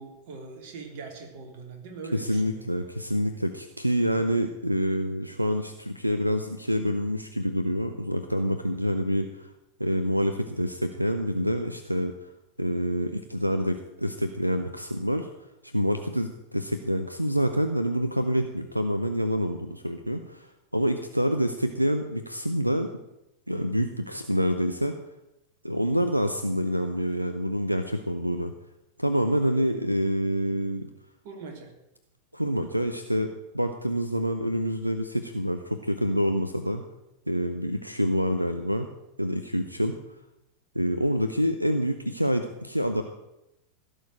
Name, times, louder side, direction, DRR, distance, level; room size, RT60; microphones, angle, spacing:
voice 1, 0.0-2.6 4.1-4.3 31.2-31.7, right 4 dB, 50° right, 3 dB, 3.4 m, -42 dB
voice 2, 2.1-9.5 9.8-12.3 12.6-15.3 15.6-22.9 23.5-25.0 25.6-28.5 29.0-30.9 32.3-36.8 37.3-38.9 39.2-40.0 40.7-43.0, equal, 90° right, 8 dB, 0.8 m, -27 dB
16.5 x 6.6 x 9.0 m, 0.90 s
figure-of-eight pair, 90°, 0 cm